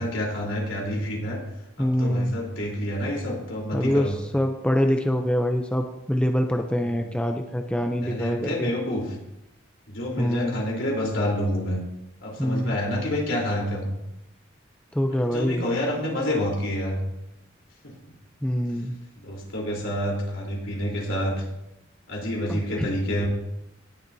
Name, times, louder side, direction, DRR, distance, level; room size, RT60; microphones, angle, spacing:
voice 1, 0.0-1.4 1.8-4.2 6.8-7.1 8.0-9.2 9.9-11.8 12.2-13.9 15.1-17.0 17.8-17.9 19.2-21.4 22.1-23.3, equal, 75° left, -2 dB, 3.6 m, -28 dB
voice 2, 1.8-2.3 3.7-8.7 10.2-10.6 12.4-12.8 14.9-15.6 18.4-18.9 22.5-22.9, equal, 5° left, 4 dB, 0.5 m, -25 dB
18.5 x 7.6 x 2.7 m, 0.88 s
head